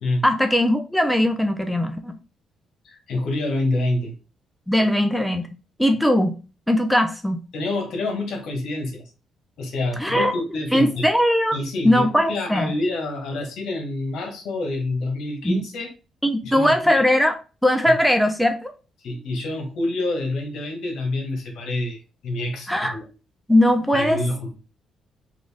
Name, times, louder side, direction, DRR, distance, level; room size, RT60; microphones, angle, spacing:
voice 1, 0.2-2.2 4.7-5.5 5.8-6.4 6.7-7.4 10.0-10.3 10.7-11.6 11.8-12.7 15.4-15.6 16.2-17.3 17.6-18.7 22.7-23.0 23.5-24.2, equal, ahead, 0.5 m, -19 dB
voice 2, 2.8-4.1 7.5-9.0 9.6-11.1 11.5-15.9 16.4-17.0 17.9-18.0 19.0-22.0 22.2-23.0 23.9-24.6, left 2 dB, 75° left, 1.2 m, -27 dB
3.8 x 2.6 x 3.3 m
cardioid pair, 90°, 0 cm